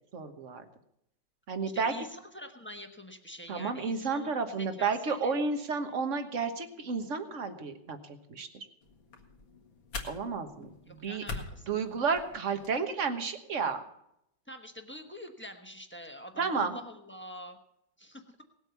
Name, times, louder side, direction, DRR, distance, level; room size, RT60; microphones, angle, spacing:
voice 1, 0.1-0.6 1.5-2.1 3.5-8.7 10.1-10.7 11.0-11.2 11.7-13.8 16.4-16.8, right 5 dB, 45° right, 8 dB, 1.4 m, -32 dB
voice 2, 1.7-4.3 4.6-5.3 10.9-11.8 14.5-17.6 18.0-18.4, equal, 10° left, 4 dB, 0.8 m, -46 dB
sound 1, 8.8-12.8, left 3 dB, 90° left, 2.5 m, -44 dB
18.5 x 8.2 x 7.0 m, 0.79 s
omnidirectional pair, 2.1 m